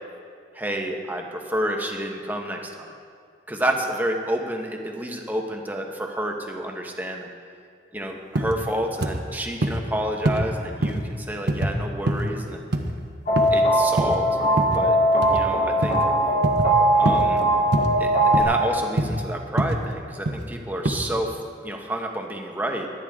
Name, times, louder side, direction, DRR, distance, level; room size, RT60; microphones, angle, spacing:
voice 1, 0.5-2.9 3.5-7.3 7.9-12.6 13.5-14.3 14.7-16.0 16.9-17.5 18.0-22.9, right 1 dB, 10° right, 1 dB, 1.2 m, -29 dB
sound 1, 8.4-8.6 9.0-9.2 9.6-9.8 10.3-10.5 10.8-11.1 11.5-11.7 12.1-12.3 12.7-12.9 13.4-13.6 14.0-14.2 14.6-14.8 15.2-15.4 15.8-16.1 16.4-16.7 17.1-17.3 17.7-18.0 18.3-18.5 19.0-19.2 19.6-19.8 20.3-20.5 20.9-21.0, right 1 dB, 70° right, 1.1 m, -24 dB
sound 2, 13.3-18.4, right 1 dB, 45° left, 2.5 m, -20 dB
22.5 x 10.0 x 3.7 m, 2.2 s
head